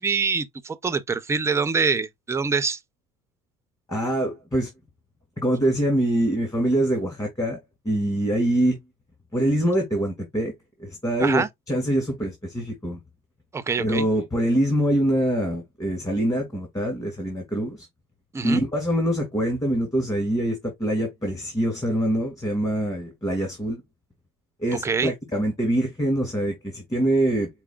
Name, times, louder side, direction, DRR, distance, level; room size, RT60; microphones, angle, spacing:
voice 1, 0.0-2.8 11.2-11.5 13.5-14.1 18.3-18.6 24.8-25.1, right 5 dB, 15° right, 0.5 m, -25 dB
voice 2, 3.9-4.7 5.4-7.6 7.9-8.8 9.3-10.5 10.8-13.0 13.8-17.9 18.4-23.8 24.6-27.5, right 1 dB, 15° left, 2.0 m, -24 dB
4.8 x 4.2 x 2.3 m
supercardioid pair, 115°, 21 cm